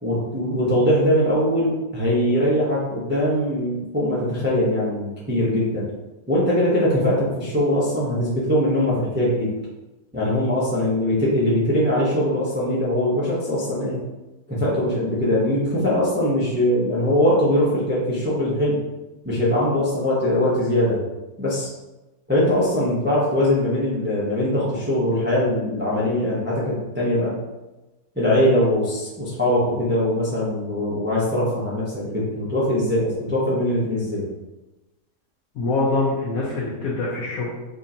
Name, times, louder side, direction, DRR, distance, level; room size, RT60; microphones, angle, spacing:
voice 1, 0.0-5.9 6.3-9.5 10.1-14.0 14.5-18.8 19.2-21.0 21.4-21.7 22.3-27.3 28.1-34.2, left 1 dB, 10° right, -7 dB, 0.5 m, -21 dB
voice 2, 35.5-37.5, left 3 dB, 65° left, -6 dB, 1.1 m, -24 dB
5.1 x 2.5 x 2.7 m, 1.1 s
omnidirectional pair, 1.8 m